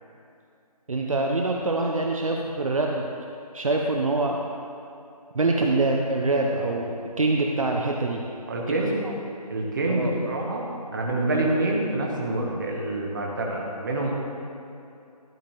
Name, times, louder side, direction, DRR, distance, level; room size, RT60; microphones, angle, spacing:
voice 1, 0.9-3.1 3.5-4.4 5.3-8.2 8.7-8.8 9.0-9.1 9.9-10.1, right 2 dB, 55° right, 0 dB, 0.8 m, -25 dB
voice 2, 8.5-9.1 9.5-10.7 10.9-14.1, right 2 dB, 30° right, -1 dB, 1.3 m, -26 dB
12.0 x 9.7 x 3.1 m, 2.6 s
figure-of-eight pair, 160°, 20 cm